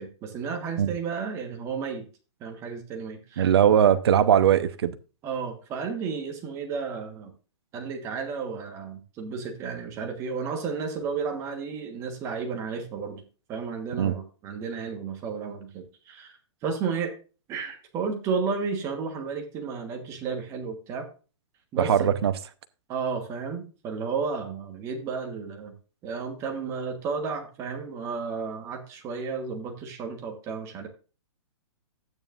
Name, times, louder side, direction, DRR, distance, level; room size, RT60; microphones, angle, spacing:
voice 1, 0.0-2.1 2.4-3.5 5.2-7.3 7.7-13.2 13.5-16.3 16.6-17.1 17.5-21.1 21.7-22.2 22.9-25.7 26.0-30.9, right 5 dB, 20° right, 1.3 m, -32 dB
voice 2, 3.4-5.0 14.0-14.1 21.8-22.3, right 9 dB, 55° right, 0.9 m, -20 dB
12.5 x 9.2 x 2.5 m
hypercardioid pair, 165°, 16 cm